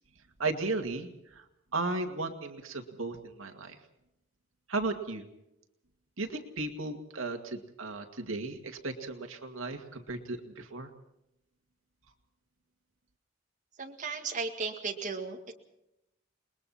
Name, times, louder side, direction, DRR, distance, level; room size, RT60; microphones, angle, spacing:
voice 1, 0.4-1.1 1.7-3.8 4.7-5.2 6.2-10.9, right 3 dB, 75° right, 5 dB, 2.2 m, -35 dB
voice 2, 13.8-15.5, right 4 dB, 35° right, 1 dB, 2.0 m, -35 dB
29.5 x 21.0 x 4.3 m, 0.87 s
head